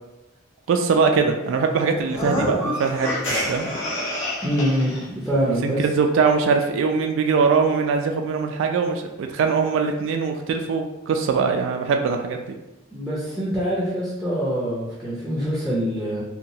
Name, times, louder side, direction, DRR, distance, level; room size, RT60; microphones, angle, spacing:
voice 1, 0.7-3.7 5.6-12.5, right 5 dB, 65° right, 5 dB, 0.3 m, -22 dB
sound 1, 2.0-5.0, left 1 dB, 70° left, 0.9 m, -27 dB
voice 2, 4.4-5.8 12.9-16.2, equal, ahead, -8 dB, 0.5 m, -24 dB
2.8 x 2.2 x 2.7 m, 0.98 s
head